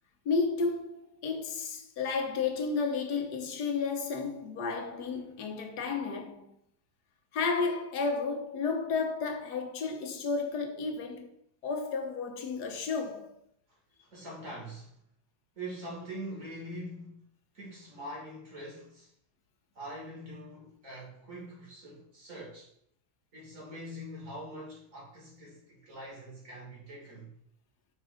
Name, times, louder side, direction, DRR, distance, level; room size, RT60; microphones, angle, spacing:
voice 1, 0.2-6.5 7.3-11.3 11.6-13.4, left 4 dB, 80° left, 1.4 m, -32 dB
voice 2, 14.0-14.9 15.6-17.3 17.5-19.1 19.7-22.7 23.3-27.4, right 1 dB, 50° right, 2.5 m, -43 dB
5.3 x 3.7 x 4.9 m
omnidirectional pair, 1.7 m